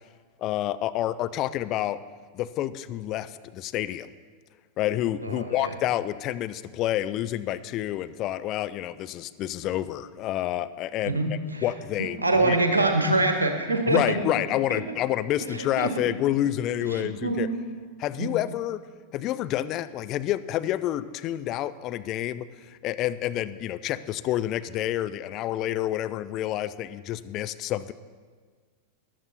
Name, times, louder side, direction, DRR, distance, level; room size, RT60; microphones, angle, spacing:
voice 1, 0.4-2.0 2.3-4.1 4.8-12.6 13.9-17.5 18.0-18.8 19.1-27.9, left 13 dB, 35° left, 13 dB, 0.4 m, -29 dB
voice 2, 5.2-5.8 11.1-11.6 12.0-14.2 14.7-14.8 15.5-15.9 17.0-17.5 18.2-18.3, right 2 dB, 80° right, 5 dB, 1.3 m, -25 dB
14.0 x 10.5 x 4.1 m, 1.5 s
figure-of-eight pair, 90°, 0 cm